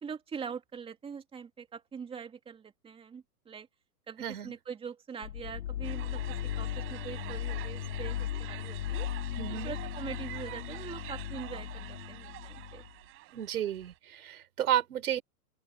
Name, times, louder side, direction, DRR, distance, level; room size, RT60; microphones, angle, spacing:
voice 1, 0.0-3.7 4.1-9.1 9.6-12.8, right 6 dB, 10° right, 2.5 m, -43 dB
voice 2, 4.2-4.6 9.4-9.7 13.3-15.2, right 11 dB, 70° right, 5.2 m, -32 dB
sound 1, 5.2-12.9, left 11 dB, 70° left, 3.6 m, -37 dB
sound 2, 5.8-14.0, right 18 dB, 30° right, 5.4 m, -47 dB
open air
hypercardioid pair, 150°, 45 cm